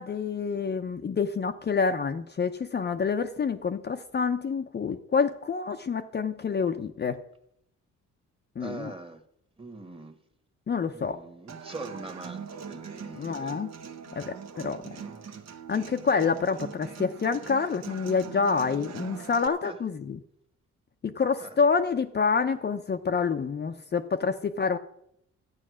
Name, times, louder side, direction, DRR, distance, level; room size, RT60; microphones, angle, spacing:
voice 1, 0.0-7.2 8.6-8.9 10.7-11.2 13.2-13.7 14.2-14.8 15.7-20.2 21.0-24.8, left 5 dB, 35° left, 6 dB, 0.7 m, -27 dB
voice 2, 8.6-9.2 9.6-10.2 10.9-13.6 14.8-15.3 19.6-19.8 21.4-21.6, right 2 dB, 20° right, 8 dB, 1.6 m, -42 dB
Human voice / Acoustic guitar, 11.5-19.5, right 7 dB, 60° right, 1.2 m, -42 dB
12.5 x 9.0 x 6.3 m, 0.75 s
cardioid pair, 90°, 30 cm